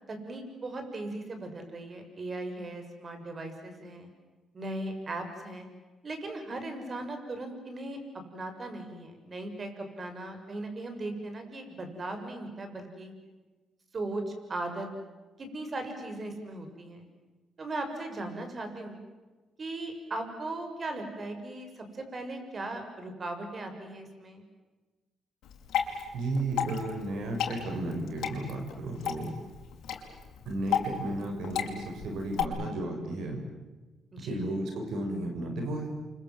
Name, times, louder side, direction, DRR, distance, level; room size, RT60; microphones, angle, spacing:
voice 1, 0.1-4.1 4.5-5.7 6.0-8.0 8.3-13.1 13.9-14.9 15.4-17.1 17.6-19.0 19.6-24.4 34.1-34.6, right 2 dB, 40° right, 6 dB, 7.0 m, -38 dB
Water / Drip, 25.4-32.4, left 8 dB, 80° left, 5.0 m, -34 dB
voice 2, 26.1-29.3 30.5-33.4 34.3-35.9, right 1 dB, 80° right, 3 dB, 6.2 m, -33 dB
29.5 x 25.5 x 7.9 m, 1.2 s
cardioid pair, 90°, 0 cm